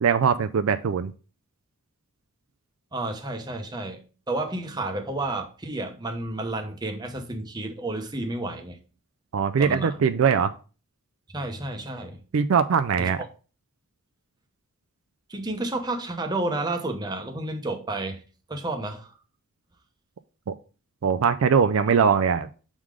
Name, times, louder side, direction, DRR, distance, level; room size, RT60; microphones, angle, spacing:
voice 1, 0.0-1.1 9.3-10.5 12.3-13.2 21.0-22.5, right 6 dB, 65° right, 0.4 m, -21 dB
voice 2, 2.9-4.0 4.3-8.8 9.6-10.0 11.3-12.2 13.0-13.1 15.3-18.2 18.5-19.1, right 2 dB, 20° right, 0.8 m, -31 dB
6.2 x 3.7 x 4.8 m
head